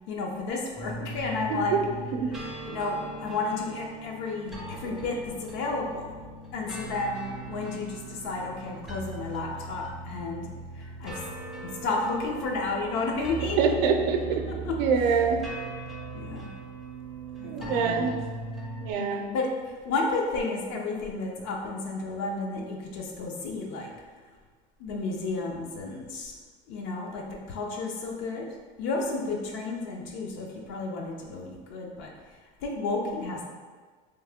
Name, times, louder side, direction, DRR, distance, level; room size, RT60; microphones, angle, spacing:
voice 1, 0.1-1.8 2.3-6.1 6.5-10.5 10.8-11.2 11.8-13.6 14.7-14.8 16.1-16.5 17.4-18.1 19.3-19.5 19.8-23.9 24.8-26.3 26.7-28.5 28.8-32.1 32.6-33.4, left 3 dB, 65° left, 0 dB, 0.7 m, -32 dB
sound 1, 0.8-18.9, right 3 dB, ahead, 0.4 m, -39 dB
voice 2, 13.6-14.4 14.8-15.4 17.4-18.1 18.8-19.3, right 5 dB, 75° right, 5 dB, 0.5 m, -25 dB
3.0 x 2.8 x 3.5 m, 1.5 s
cardioid pair, 155°, 21 cm